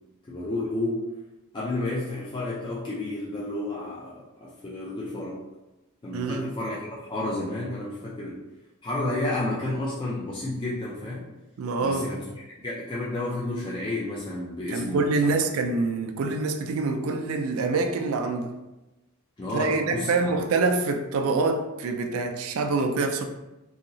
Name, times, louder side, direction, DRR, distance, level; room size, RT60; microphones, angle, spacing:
voice 1, 0.2-1.1 1.5-5.4 6.0-8.4 8.8-11.3 11.8-15.3 19.4-20.1, left 2 dB, 25° left, 0.4 m, -31 dB
voice 2, 6.1-6.5 11.6-12.1 14.7-18.5 19.5-23.2, right 3 dB, 75° right, 0.4 m, -26 dB
2.8 x 2.7 x 2.7 m
head